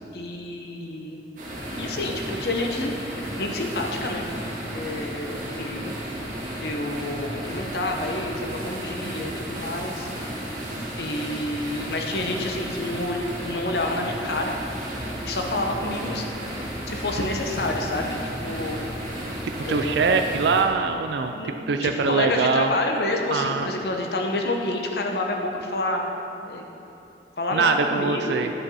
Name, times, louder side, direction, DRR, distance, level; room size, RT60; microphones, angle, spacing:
voice 1, 0.1-1.2 1.8-4.2 4.6-5.9 6.6-10.1 11.0-14.5 15.2-16.3 16.9-18.8 19.6-20.3 21.3-26.0 26.5-26.6 27.4-28.4, left 2 dB, 65° left, 2 dB, 0.9 m, -29 dB
sound 1, 1.4-20.6, right 1 dB, 45° right, 1.9 m, -33 dB
voice 2, 19.4-21.3 21.7-22.7 23.3-23.7 27.5-28.5, right 4 dB, 75° right, 6 dB, 0.4 m, -23 dB
9.8 x 5.2 x 5.6 m, 2.9 s
head